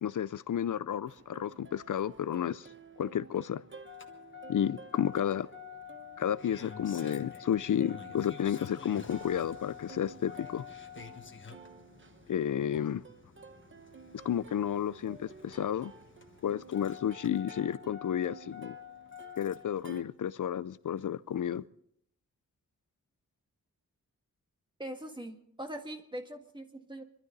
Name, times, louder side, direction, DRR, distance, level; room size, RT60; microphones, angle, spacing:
voice 1, 0.0-2.7 3.0-3.6 4.5-5.5 6.2-10.7 12.3-13.0 14.2-15.9 16.4-18.8 19.4-21.6, left 9 dB, 70° left, 0.5 m, -32 dB
Plucked string instrument, 1.1-20.0, right 4 dB, 40° right, 1.0 m, -53 dB
Engine starting, 3.8-19.8 21.0-21.1, left 7 dB, 35° left, 1.3 m, -49 dB
voice 2, 24.8-27.0, right 1 dB, 15° right, 1.7 m, -42 dB
26.5 x 12.5 x 4.0 m
wide cardioid pair, 135°, 32 cm